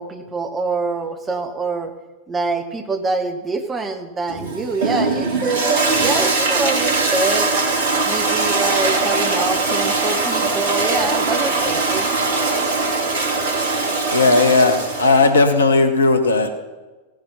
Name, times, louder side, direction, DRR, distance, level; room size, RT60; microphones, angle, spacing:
voice 1, 0.0-1.9 2.3-7.5 8.0-12.1, right 3 dB, 20° right, 7 dB, 1.5 m, -25 dB
Toilet flush, 4.3-15.3, right 3 dB, 55° right, 2.8 m, -21 dB
voice 2, 14.1-16.6, left 3 dB, 75° left, 8 dB, 1.5 m, -16 dB
17.0 x 10.5 x 5.7 m, 1.2 s
figure-of-eight pair, 90°, 0 cm